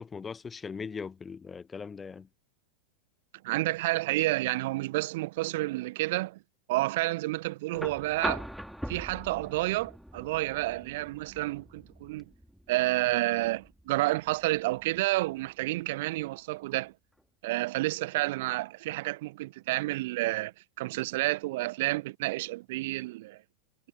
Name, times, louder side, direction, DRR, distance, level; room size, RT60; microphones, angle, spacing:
voice 1, 0.0-2.3, left 5 dB, 15° left, 1.0 m, -39 dB
voice 2, 3.4-6.4 6.7-8.5 8.9-12.2 12.7-16.9 17.4-23.4, right 19 dB, 50° right, 1.5 m, -30 dB
sound 1, 7.7-15.8 17.2-17.3, equal, ahead, 4.3 m, -42 dB
figure-of-eight pair, 90°, 0 cm